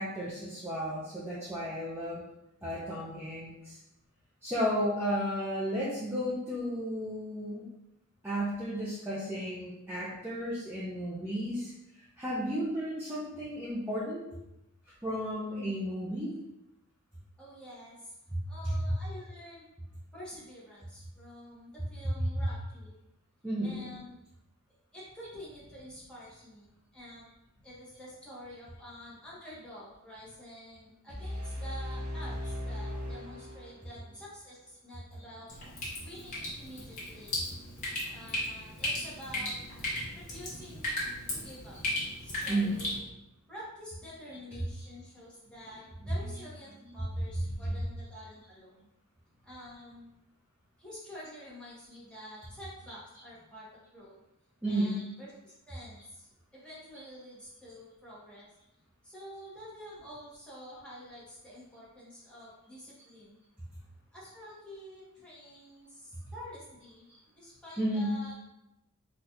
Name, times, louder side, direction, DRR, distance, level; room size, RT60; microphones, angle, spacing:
voice 1, 0.0-2.2 2.6-3.8 4.4-7.6 8.2-11.7 12.2-14.3 15.0-16.3 18.3-18.8 23.4-23.8 40.0-40.2 42.4-42.8 46.0-46.1 47.4-47.8 54.6-55.0 67.1-67.2 67.8-68.2, equal, 10° right, -9 dB, 0.5 m, -33 dB
voice 2, 17.4-18.1 18.5-19.7 20.1-22.9 23.6-24.2 24.9-27.3 27.6-35.5 36.0-37.3 38.1-39.5 40.1-40.9 41.3-41.8 42.2-43.1 43.5-48.9 49.4-50.1 50.8-54.2 54.7-58.5 59.0-63.4 64.1-67.1 67.3-68.3, equal, 5° left, -8 dB, 1.1 m, -48 dB
sound 1, 31.1-34.1, left 1 dB, 75° right, 0.9 m, -38 dB
Drip, 35.5-43.0, left 1 dB, 35° left, 1.2 m, -36 dB
4.0 x 2.4 x 2.7 m, 0.89 s
head